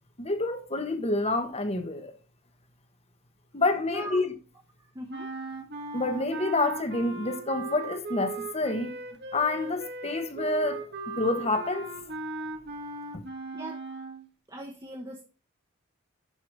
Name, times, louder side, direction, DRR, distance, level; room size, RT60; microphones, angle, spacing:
voice 1, 0.2-2.1 3.5-4.3 5.9-8.9 9.3-10.8 11.2-11.9 13.1-13.2, left 2 dB, 30° left, 1.2 m, -28 dB
voice 2, 3.9-4.2 4.9-5.3 13.5-13.8 14.5-15.2, right 1 dB, 20° right, 1.1 m, -39 dB
sound 1, 5.1-14.3, right 2 dB, 55° right, 1.7 m, -38 dB
11.0 x 4.7 x 4.8 m
head